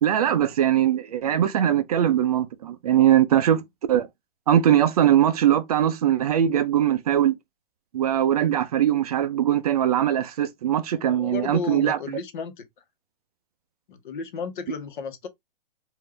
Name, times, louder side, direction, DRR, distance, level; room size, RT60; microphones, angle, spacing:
voice 1, 0.0-4.1 4.5-7.3 7.9-12.0, right 10 dB, 40° right, 0.5 m, -21 dB
voice 2, 11.1-12.6 13.9-15.3, left 5 dB, 60° left, 1.1 m, -33 dB
3.7 x 2.6 x 3.2 m
hypercardioid pair, 165°, 29 cm